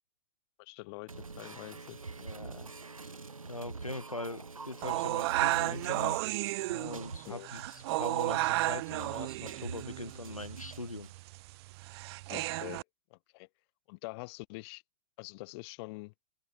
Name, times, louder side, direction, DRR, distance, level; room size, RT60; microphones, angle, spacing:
voice 1, 0.6-1.1 1.4-2.0 7.2-7.5 12.3-12.8 13.1-13.5 13.9-14.8 15.2-16.1, left 26 dB, 50° left, 1.5 m, -45 dB
sound 1, 1.1-11.1, right 4 dB, 80° right, 3.5 m, -46 dB
voice 2, 2.2-2.7 3.0-3.2 3.5-6.2 6.7-11.1, left 2 dB, 90° left, 1.9 m, -41 dB
sound 2, 4.8-12.8, right 20 dB, 50° right, 0.5 m, -33 dB
open air
figure-of-eight pair, 85°, 17 cm